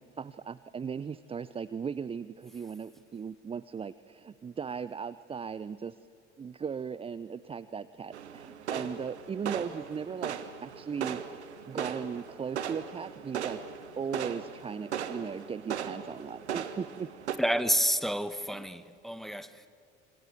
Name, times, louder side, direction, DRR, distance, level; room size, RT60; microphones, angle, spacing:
voice 1, 0.0-6.0 6.4-11.2 11.7-13.6 14.0-17.1, right 6 dB, 15° right, 0.6 m, -37 dB
sound 1, 8.1-17.4, right 8 dB, 75° right, 1.4 m, -38 dB
voice 2, 17.4-19.7, equal, ahead, 1.2 m, -29 dB
28.5 x 25.5 x 8.0 m
figure-of-eight pair, 60°, 34 cm